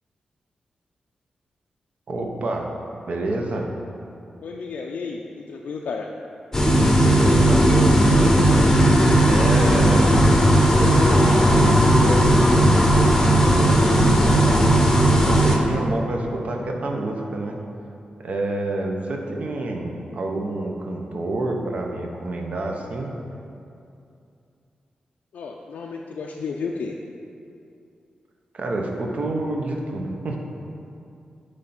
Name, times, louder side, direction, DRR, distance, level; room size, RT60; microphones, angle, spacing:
voice 1, 2.1-2.7 3.1-3.7 7.2-8.7 9.3-10.1 10.7-17.6 18.2-23.1 28.5-30.4, right 2 dB, 55° right, 1 dB, 0.8 m, -28 dB
voice 2, 4.4-6.1 25.3-27.0, left 5 dB, 80° left, 0 dB, 0.4 m, -32 dB
sound 1, 6.5-15.6, equal, 15° left, 0.7 m, -16 dB
9.3 x 3.3 x 4.2 m, 2.6 s
wide cardioid pair, 110°, 3 cm